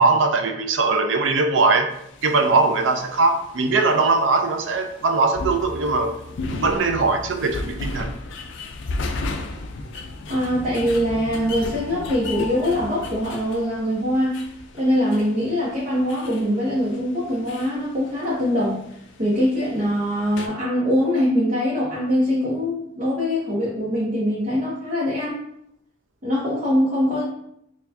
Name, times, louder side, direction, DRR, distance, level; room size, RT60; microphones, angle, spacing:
voice 1, 0.0-1.9 2.2-6.1 6.5-8.1, right 3 dB, 70° right, 6 dB, 0.4 m, -20 dB
sound 1, 1.9-20.5, left 2 dB, 65° left, 0.4 m, -35 dB
voice 2, 10.3-14.4 14.7-18.8 19.2-25.4 26.2-27.2, equal, 40° right, -7 dB, 0.8 m, -23 dB
4.5 x 2.3 x 2.6 m, 0.75 s
head